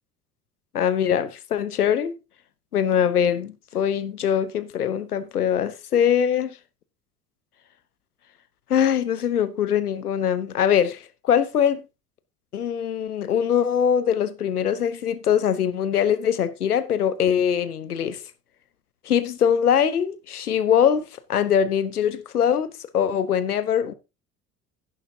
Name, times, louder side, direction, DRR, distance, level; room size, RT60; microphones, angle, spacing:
voice 1, 0.7-2.2 2.7-6.6 8.7-11.8 12.5-18.2 19.0-23.9, left 8 dB, 80° left, 1.0 m, -22 dB
11.0 x 11.0 x 2.8 m
figure-of-eight pair, 60°, 45 cm